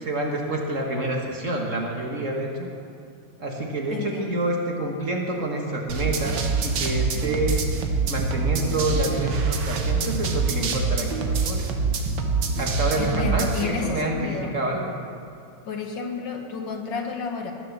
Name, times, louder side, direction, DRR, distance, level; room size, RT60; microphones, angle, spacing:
voice 1, 0.0-2.7 3.4-7.6 8.1-11.6 12.6-15.0, right 1 dB, 40° right, 0 dB, 1.7 m, -28 dB
voice 2, 3.9-4.4 13.0-14.5 15.6-17.5, left 5 dB, 65° left, 2 dB, 2.0 m, -31 dB
sound 1, 5.9-13.6, right 4 dB, 65° right, 1.7 m, -25 dB
20.5 x 6.9 x 7.2 m, 2.4 s
omnidirectional pair, 2.1 m